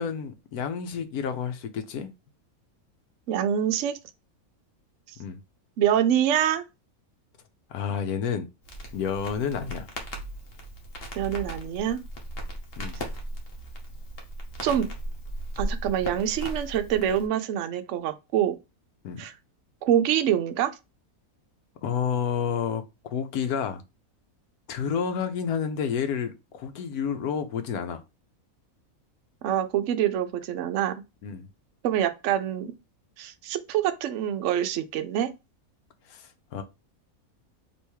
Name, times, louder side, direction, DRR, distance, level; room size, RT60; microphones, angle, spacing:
voice 1, 0.0-2.1 5.2-5.4 7.7-8.5 8.9-9.9 12.8-13.0 19.0-19.2 21.8-22.8 23.1-23.8 24.7-28.0 31.2-31.5 36.1-36.6, left 7 dB, 90° left, 1.2 m, -30 dB
voice 2, 3.3-4.0 5.8-6.6 11.2-12.0 14.6-14.9 15.6-18.6 19.2-19.3 19.8-20.7 29.4-31.0 31.8-32.7 33.2-35.3, right 10 dB, 65° right, 0.8 m, -25 dB
Crackle, 8.6-17.3, right 1 dB, 45° left, 1.1 m, -36 dB
3.4 x 3.0 x 4.5 m
omnidirectional pair, 1.5 m